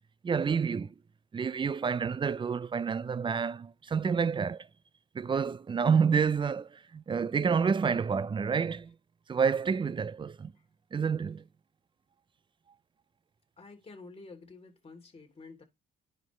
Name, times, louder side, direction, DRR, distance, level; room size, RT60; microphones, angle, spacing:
voice 1, 0.2-0.9 1.3-4.7 5.1-8.9 9.3-10.5 10.9-11.4, right 6 dB, 25° right, 0.4 m, -29 dB
voice 2, 13.6-15.6, left 3 dB, 30° left, 3.0 m, -50 dB
10.0 x 5.4 x 3.1 m
cardioid pair, 90°, 20 cm